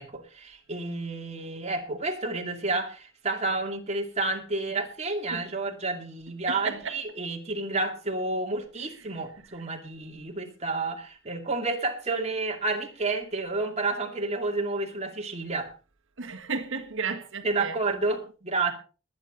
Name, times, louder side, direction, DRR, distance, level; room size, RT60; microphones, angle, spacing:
voice 1, 0.0-15.7 17.4-18.7, right 3 dB, 30° right, 2.5 m, -30 dB
voice 2, 6.5-7.0 9.0-9.1 16.2-17.8, right 5 dB, 60° right, 1.7 m, -33 dB
20.5 x 9.5 x 3.9 m
head